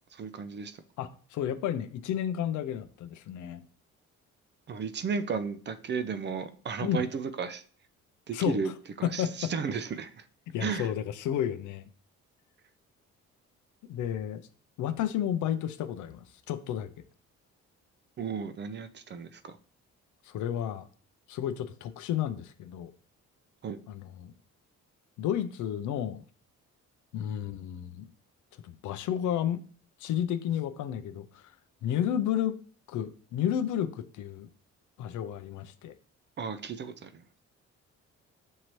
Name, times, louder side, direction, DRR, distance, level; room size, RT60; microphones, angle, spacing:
voice 1, 0.1-0.8 4.7-7.6 8.3-8.7 9.0-10.2 10.6-10.9 18.2-19.6 23.6-23.8 36.4-37.2, right 5 dB, 35° right, 0.4 m, -34 dB
voice 2, 1.0-3.6 6.8-7.1 8.3-8.6 9.0-9.5 10.5-11.9 13.9-14.4 14.8-16.9 20.3-20.9 21.3-22.9 23.9-24.3 25.2-26.2 27.1-28.1 28.6-29.6 30.0-31.4 31.8-32.6 32.9-34.5 35.0-35.9, left 10 dB, 80° left, 0.5 m, -32 dB
6.3 x 2.7 x 3.0 m
cardioid pair, 90°, 30 cm